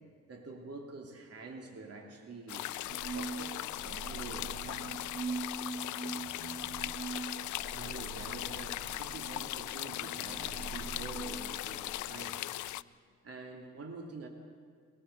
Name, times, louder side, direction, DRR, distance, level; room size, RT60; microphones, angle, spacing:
voice 1, 0.3-2.7 3.1-5.0 7.7-12.5 13.2-14.3, right 3 dB, 50° right, 2 dB, 3.0 m, -47 dB
sound 1, 2.5-12.8, left 16 dB, 75° left, 0.5 m, -39 dB
sound 2, 2.9-11.8, right 4 dB, 70° right, 5.5 m, -42 dB
23.0 x 19.0 x 6.8 m, 2.1 s
cardioid pair, 90°, 30 cm